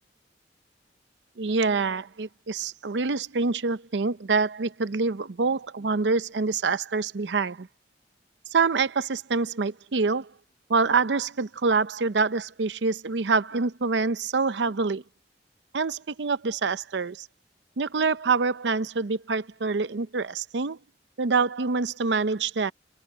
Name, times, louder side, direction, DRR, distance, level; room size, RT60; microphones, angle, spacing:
voice 1, 1.4-7.7 8.5-10.3 10.7-15.0 15.7-17.3 17.8-20.8 21.2-22.7, right 4 dB, 85° right, 0.7 m, -26 dB
head